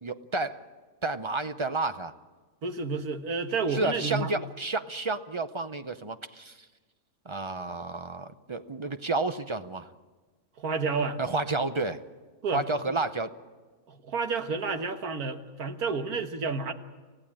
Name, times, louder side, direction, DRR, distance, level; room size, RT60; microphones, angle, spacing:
voice 1, 0.0-0.6 1.0-2.1 3.7-6.6 7.2-9.9 11.2-12.0 12.5-13.3, right 3 dB, 35° right, 10 dB, 0.5 m, -31 dB
voice 2, 2.6-4.4 10.6-11.2 12.4-12.9 13.9-16.7, right 4 dB, 80° right, 7 dB, 1.9 m, -30 dB
27.5 x 16.0 x 8.8 m, 1.3 s
omnidirectional pair, 1.5 m